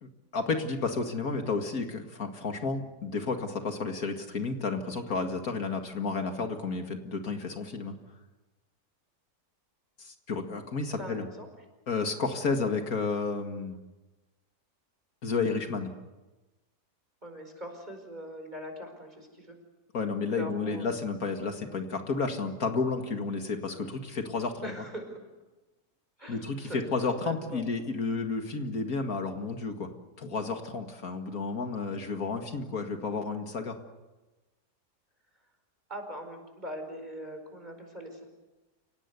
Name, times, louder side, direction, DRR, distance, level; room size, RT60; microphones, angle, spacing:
voice 1, 0.0-8.0 10.0-11.3 11.9-13.8 15.2-15.9 19.9-24.7 26.3-29.9 30.2-33.8, left 4 dB, 65° left, 5 dB, 2.3 m, -31 dB
voice 2, 11.0-11.5 17.2-19.5 20.4-21.0 24.6-25.3 26.2-27.7 35.9-38.2, equal, 25° right, 5 dB, 5.1 m, -42 dB
29.5 x 17.5 x 8.2 m, 1.1 s
omnidirectional pair, 1.6 m